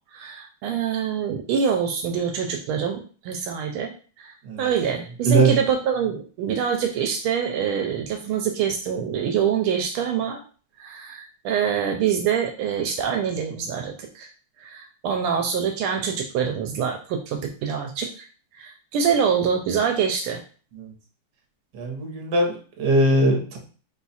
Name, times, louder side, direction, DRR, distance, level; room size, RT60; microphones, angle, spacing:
voice 1, 0.1-3.9 4.2-10.4 10.8-14.3 14.6-18.3 18.5-20.4, right 7 dB, 80° right, 3 dB, 1.4 m, -25 dB
voice 2, 5.2-5.6 20.8-20.9 21.7-23.6, right 2 dB, 55° right, 1 dB, 1.4 m, -21 dB
4.3 x 2.3 x 4.0 m, 0.40 s
omnidirectional pair, 2.3 m